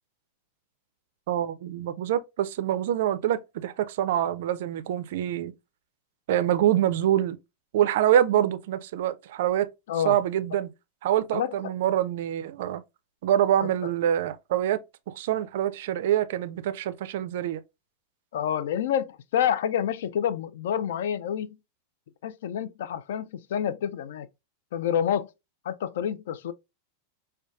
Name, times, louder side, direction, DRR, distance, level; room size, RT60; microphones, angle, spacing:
voice 1, 1.3-5.5 6.3-7.4 7.7-9.7 10.0-10.7 11.0-12.8 13.2-14.8 15.1-17.6, right 11 dB, 55° right, 0.3 m, -25 dB
voice 2, 11.3-11.7 13.6-13.9 18.3-21.6 22.2-24.3 24.7-25.3 25.6-26.5, left 9 dB, 55° left, 0.3 m, -28 dB
4.9 x 2.2 x 2.3 m
figure-of-eight pair, 90°, 0 cm